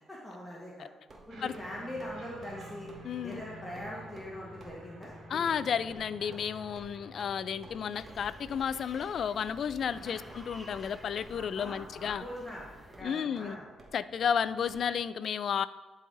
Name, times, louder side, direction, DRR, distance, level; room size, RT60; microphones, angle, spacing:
voice 1, 0.1-0.9 1.3-2.9 3.2-5.4 6.2-6.3 9.9-10.3 11.3-13.6, left 1 dB, 10° left, -5 dB, 1.5 m, -42 dB
sound 1, 1.1-1.7 2.0-2.2 2.4-2.6 2.9-3.0 3.3-3.5 3.8-3.9 4.2-4.3 4.6-4.8 5.0-5.1 5.5-5.6 5.9-6.0 6.3-6.5 6.8-6.9 7.2-7.3 7.6-7.7 8.1-8.2 8.5-8.7 8.9-9.1 9.4-9.5 9.8-9.9 10.3-10.4 10.7-10.9 11.2-11.7 12.0-12.2 12.5-12.6 12.9-13.1 13.4-13.5 13.8-13.9 14.2-14.4 14.7-14.8, right 2 dB, 40° right, 1.4 m, -53 dB
sound 2, 1.3-15.0, equal, 60° right, 2.3 m, -52 dB
voice 2, 3.0-3.4 5.3-12.2 13.0-13.6 13.9-15.7, left 7 dB, 60° left, 15 dB, 0.3 m, -32 dB
sound 3, 7.9-13.0, right 1 dB, 15° right, 0.9 m, -52 dB
11.0 x 4.0 x 3.9 m, 1.2 s
cardioid pair, 90°, 0 cm